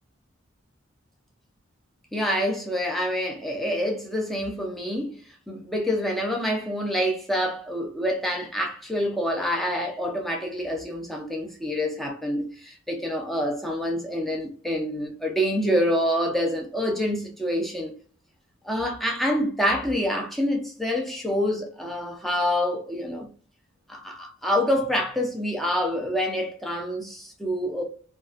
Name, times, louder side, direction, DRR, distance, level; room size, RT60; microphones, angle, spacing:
voice 1, 2.1-5.1 5.5-17.9 18.6-23.3 23.9-27.8, equal, ahead, 0.5 m, -27 dB
2.4 x 2.2 x 2.3 m
head